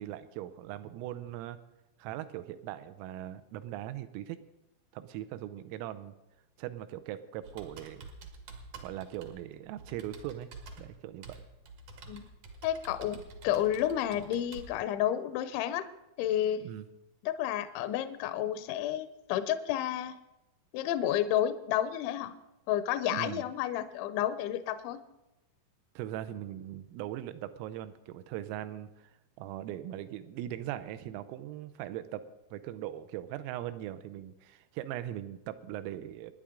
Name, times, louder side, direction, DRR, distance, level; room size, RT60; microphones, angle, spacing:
voice 1, 0.0-1.6 2.0-4.4 4.9-6.1 6.6-8.1 8.8-10.5 10.8-11.4 16.6-16.9 23.1-23.4 26.0-29.1 29.4-32.2 32.5-36.3, right 12 dB, 90° right, 12 dB, 3.3 m, -40 dB
Computer keyboard, 7.4-14.7, right 3 dB, 65° right, 2.0 m, -49 dB
voice 2, 12.6-15.9 16.2-16.6 17.2-20.1 20.7-22.3 22.7-25.0, left 11 dB, 80° left, 10 dB, 2.7 m, -31 dB
27.5 x 10.0 x 3.7 m, 0.95 s
omnidirectional pair, 5.8 m